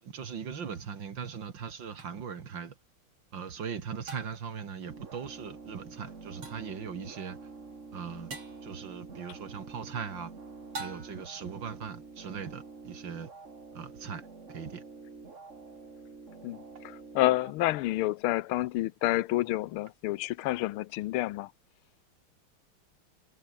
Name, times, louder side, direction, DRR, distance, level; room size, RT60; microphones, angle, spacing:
voice 1, 0.0-2.7 3.3-7.4 7.9-8.3 8.6-10.3 10.8-13.3 13.7-14.2 14.5-14.8, right 7 dB, 60° right, 2.6 m, -39 dB
sound 1, 2.0-2.1 4.1-4.6 6.4-6.8 8.3-8.7 10.7-11.4, right 3 dB, 80° right, 6.8 m, -43 dB
sound 2, 4.9-17.5, right 4 dB, 35° right, 2.8 m, -48 dB
voice 2, 16.4-21.5, left 16 dB, 85° left, 1.5 m, -29 dB
omnidirectional pair, 2.3 m